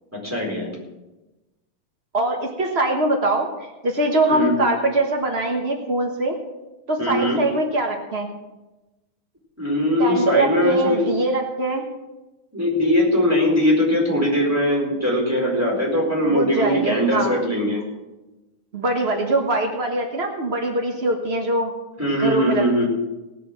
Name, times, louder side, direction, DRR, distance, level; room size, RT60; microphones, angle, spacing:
voice 1, 0.1-0.8 4.3-4.6 7.0-7.4 9.6-11.1 12.5-17.8 22.0-22.9, equal, 5° right, -4 dB, 4.1 m, -21 dB
voice 2, 2.1-6.4 6.9-8.3 10.0-11.8 16.2-17.3 18.7-21.7 22.2-22.9, right 2 dB, 85° right, 2 dB, 0.5 m, -23 dB
18.5 x 6.7 x 6.3 m, 1.1 s
omnidirectional pair, 3.5 m